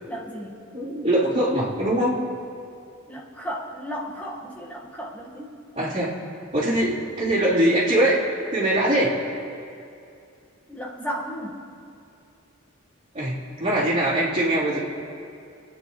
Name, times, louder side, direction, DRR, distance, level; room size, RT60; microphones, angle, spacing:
voice 1, 0.1-0.6 3.1-5.5 10.7-11.6, equal, 5° left, -4 dB, 1.6 m, -34 dB
voice 2, 0.7-2.2 5.8-6.1 6.5-8.2 8.5-9.1 13.1-14.8, right 1 dB, 30° right, -10 dB, 3.6 m, -22 dB
25.0 x 9.9 x 3.2 m, 2.5 s
head